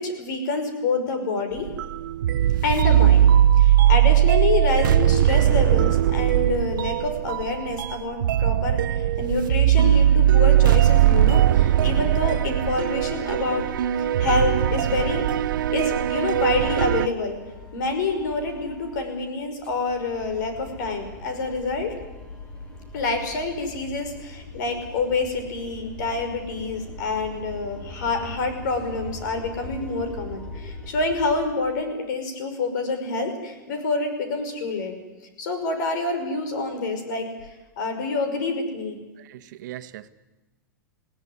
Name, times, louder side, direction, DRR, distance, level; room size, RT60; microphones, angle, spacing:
voice 1, 0.0-1.7 2.6-13.7 14.0-15.3 15.7-17.4 17.7-21.9 22.9-34.9 35.4-37.3 37.8-39.0, left 3 dB, 65° left, 7 dB, 5.5 m, -27 dB
sound 1, 1.6-17.1, right 11 dB, 80° right, 0.7 m, -19 dB
sound 2, 12.0-19.1 19.4-31.4, left 1 dB, 10° left, 7.1 m, -41 dB
voice 2, 39.2-40.1, right 13 dB, 65° right, 11 dB, 1.2 m, -39 dB
20.5 x 17.0 x 9.6 m, 1.1 s
hypercardioid pair, 130°, 11 cm